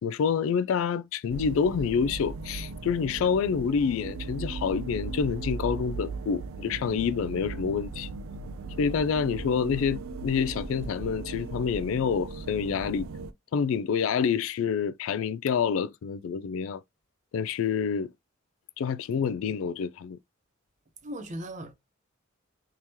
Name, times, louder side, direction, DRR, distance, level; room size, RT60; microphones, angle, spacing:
voice 1, 0.0-8.1 8.8-13.1 13.5-16.8 17.3-18.1 18.8-20.2, left 6 dB, 70° left, 0.3 m, -27 dB
sound 1, 1.3-13.3, right 3 dB, 75° right, 0.4 m, -37 dB
voice 2, 9.5-10.0 21.0-21.7, right 1 dB, 35° right, 0.6 m, -39 dB
3.6 x 2.8 x 2.9 m
head